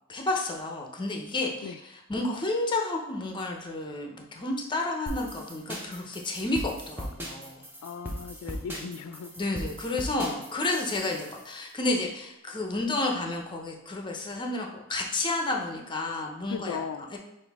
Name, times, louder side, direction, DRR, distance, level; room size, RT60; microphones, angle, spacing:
voice 1, 0.1-1.7 2.1-7.7 9.4-16.8 17.1-17.2, left 2 dB, 20° left, 2 dB, 0.6 m, -31 dB
sound 1, 5.1-11.4, equal, 10° right, 0.8 m, -38 dB
voice 2, 7.8-9.3 16.5-17.1, left 6 dB, 80° left, 10 dB, 0.3 m, -37 dB
6.0 x 2.6 x 3.4 m, 0.89 s
head